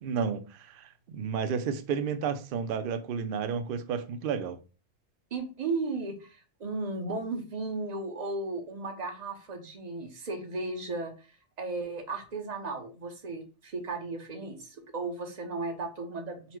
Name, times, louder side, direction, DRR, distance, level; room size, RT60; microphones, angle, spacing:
voice 1, 0.0-4.6, right 6 dB, 60° right, 0.6 m, -32 dB
voice 2, 5.3-11.3 11.6-16.6, right 3 dB, 40° right, 0.9 m, -35 dB
4.1 x 2.1 x 4.4 m
omnidirectional pair, 1.2 m